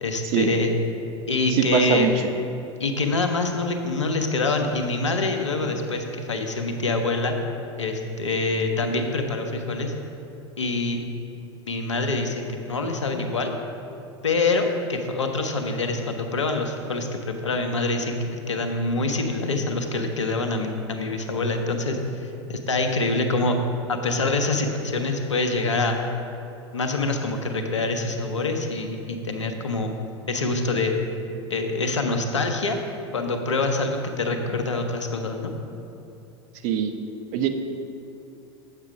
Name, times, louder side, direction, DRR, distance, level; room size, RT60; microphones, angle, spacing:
voice 1, 0.0-0.7 1.3-2.1 2.8-7.3 7.8-9.9 10.6-11.0 11.7-13.5 14.2-23.6 23.9-26.0 26.7-29.9 30.3-30.9 31.5-32.8 33.1-35.5, left 3 dB, 85° left, 4 dB, 0.9 m, -25 dB
voice 2, 1.5-2.1 36.6-36.9 37.3-37.5, right 8 dB, 50° right, 6 dB, 0.8 m, -22 dB
8.3 x 6.6 x 5.0 m, 2.8 s
figure-of-eight pair, 85°, 15 cm